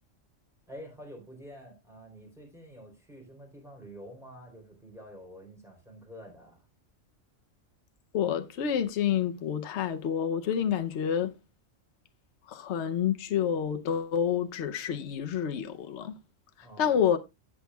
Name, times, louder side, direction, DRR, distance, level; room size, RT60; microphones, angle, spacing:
voice 1, 0.7-6.7 16.6-17.0, equal, ahead, 3.5 m, -48 dB
voice 2, 8.1-11.3 12.5-16.1 16.8-17.2, left 8 dB, 65° left, 1.0 m, -28 dB
17.5 x 6.1 x 2.3 m
omnidirectional pair, 1.3 m